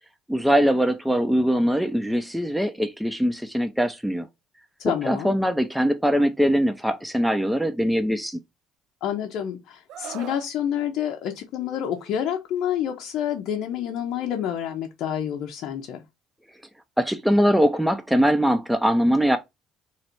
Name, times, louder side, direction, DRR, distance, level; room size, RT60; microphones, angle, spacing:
voice 1, 0.3-4.3 4.8-8.4 17.0-19.4, equal, 5° right, 0.6 m, -22 dB
voice 2, 4.8-5.3 9.0-16.0, left 9 dB, 65° left, 0.7 m, -28 dB
Screaming, 9.9-10.5 11.9-12.2, right 10 dB, 65° right, 0.4 m, -39 dB
3.2 x 2.5 x 4.4 m
hypercardioid pair, 55°, 0 cm